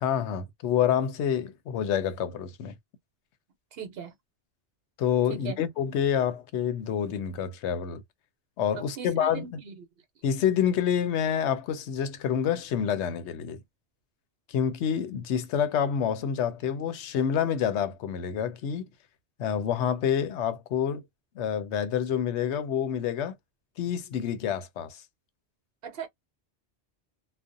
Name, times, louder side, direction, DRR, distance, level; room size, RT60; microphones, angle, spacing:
voice 1, 0.0-2.7 5.0-8.0 8.6-9.5 10.2-13.6 14.5-18.9 19.4-21.0 21.4-23.3 23.8-25.0, left 8 dB, 90° left, 0.9 m, -27 dB
voice 2, 3.7-4.1 5.3-5.6 8.7-9.8 25.8-26.1, right 7 dB, 65° right, 0.9 m, -39 dB
2.4 x 2.1 x 2.5 m
omnidirectional pair, 1.1 m